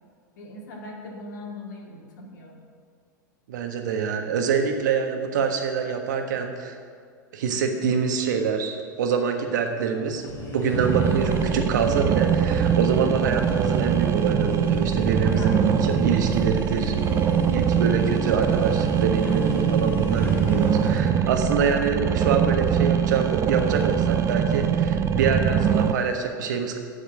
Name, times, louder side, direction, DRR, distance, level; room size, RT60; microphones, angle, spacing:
voice 1, 0.4-2.6 15.1-15.6 16.2-17.1, left 1 dB, 70° left, 0 dB, 2.2 m, -41 dB
voice 2, 3.5-6.8 7.3-16.9 17.5-26.8, right 6 dB, 65° right, 5 dB, 1.4 m, -25 dB
sound 1, 10.1-21.1, left 1 dB, 20° left, 3.1 m, -34 dB
sound 2, 10.7-25.9, right 8 dB, 30° right, 0.6 m, -23 dB
7.6 x 7.3 x 8.3 m, 2.1 s
hypercardioid pair, 95°, 10 cm